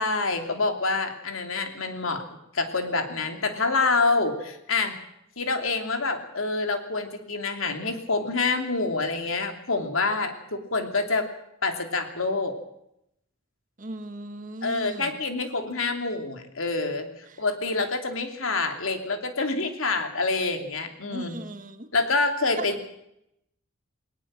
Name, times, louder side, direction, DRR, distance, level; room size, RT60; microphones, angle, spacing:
voice 1, 0.0-2.2 2.5-5.0 5.4-11.3 11.6-12.6 14.6-17.1 17.4-21.4 21.9-22.8, left 3 dB, 85° left, 5 dB, 3.0 m, -27 dB
voice 2, 13.8-15.2 21.1-21.9 22.6-22.7, right 1 dB, 40° right, 9 dB, 1.6 m, -37 dB
19.5 x 19.0 x 7.5 m, 0.80 s
head